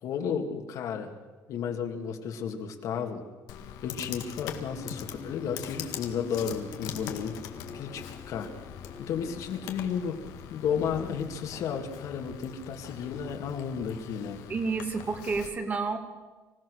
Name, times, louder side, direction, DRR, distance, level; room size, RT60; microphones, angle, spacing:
voice 1, 0.0-1.2 1.5-3.2 3.8-7.4 7.7-8.5 9.0-10.2 10.5-14.4, left 7 dB, 60° left, 4 dB, 2.4 m, -33 dB
Computer keyboard, 3.5-15.5, left 9 dB, 85° left, 2.0 m, -42 dB
sound 1, 4.5-9.7, left 5 dB, 25° left, 1.2 m, -47 dB
voice 2, 14.5-16.0, right 4 dB, 25° right, 5 dB, 2.3 m, -30 dB
25.5 x 16.5 x 6.5 m, 1.3 s
cardioid pair, 145°, 6 cm